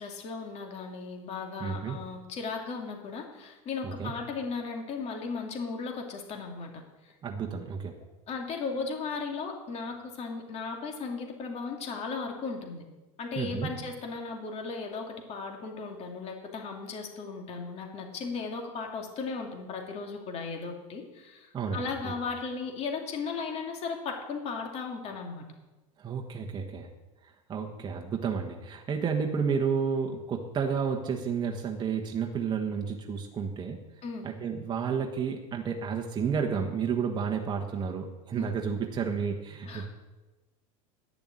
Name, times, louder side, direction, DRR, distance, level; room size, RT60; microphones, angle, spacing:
voice 1, 0.0-7.1 8.3-12.8 13.2-25.4 34.0-34.3 38.4-38.5 39.6-39.9, left 4 dB, 40° left, 2 dB, 2.6 m, -36 dB
voice 2, 1.6-2.0 3.8-4.1 7.2-7.9 13.4-13.7 21.5-22.2 26.0-26.9 27.5-33.8 34.2-39.9, right 6 dB, 25° right, 1 dB, 1.3 m, -31 dB
11.0 x 6.9 x 8.6 m, 1.1 s
supercardioid pair, 120°, 17 cm